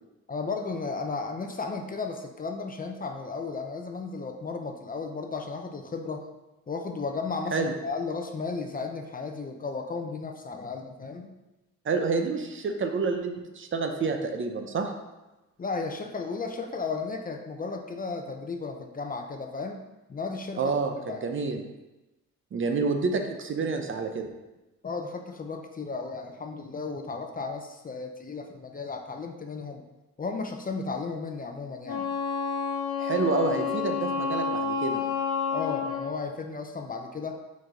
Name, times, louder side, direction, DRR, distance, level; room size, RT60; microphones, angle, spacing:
voice 1, 0.3-6.3 6.7-11.3 15.6-19.8 20.1-20.8 21.1-21.3 24.8-29.8 30.2-32.1 35.5-37.4, left 4 dB, 30° left, 4 dB, 0.7 m, -34 dB
voice 2, 11.8-14.9 20.6-21.6 22.5-24.3 33.0-35.0, right 4 dB, 40° right, 5 dB, 0.7 m, -28 dB
Wind instrument woodwind instrument, 31.8-36.2, left 5 dB, 75° left, 1.3 m, -29 dB
5.0 x 4.0 x 5.0 m, 1.0 s
cardioid pair, 90°, 30 cm